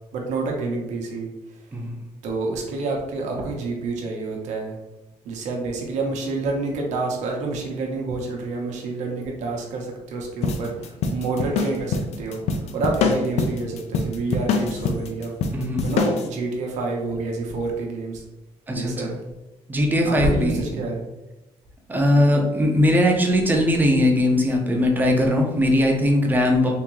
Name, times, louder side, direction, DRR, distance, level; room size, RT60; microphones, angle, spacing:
voice 1, 0.1-1.3 2.2-4.8 5.2-15.3 15.8-18.2 18.7-19.1 20.1-21.1 26.5-26.7, right 3 dB, 75° right, 0 dB, 0.8 m, -28 dB
sound 1, 10.4-16.3, left 4 dB, 65° left, 0.4 m, -25 dB
voice 2, 15.5-15.9 18.7-19.2 19.7-20.8 21.9-26.7, left 1 dB, 15° right, 1 dB, 0.5 m, -20 dB
3.5 x 2.6 x 3.0 m, 1.0 s
cardioid pair, 155°, 12 cm